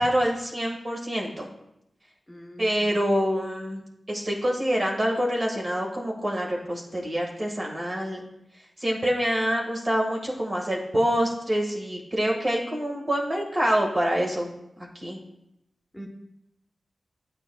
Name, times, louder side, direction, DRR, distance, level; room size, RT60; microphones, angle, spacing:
voice 1, 0.0-1.5 2.6-3.8 4.1-8.2 8.8-14.5 14.8-15.2, equal, 45° right, -2 dB, 1.6 m, -26 dB
voice 2, 2.3-2.9 15.9-16.1, equal, 10° left, 0 dB, 0.9 m, -43 dB
9.1 x 4.8 x 2.3 m, 0.83 s
cardioid pair, 50°, 0 cm